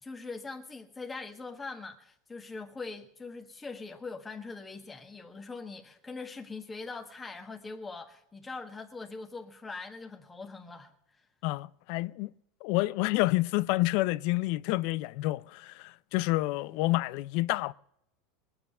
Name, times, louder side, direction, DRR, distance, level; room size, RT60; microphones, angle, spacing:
voice 1, 0.0-11.3, left 4 dB, 15° left, 1.4 m, -42 dB
voice 2, 11.4-12.3 12.6-17.7, left 19 dB, 65° left, 0.5 m, -29 dB
20.5 x 7.9 x 6.6 m
supercardioid pair, 115°, 0 cm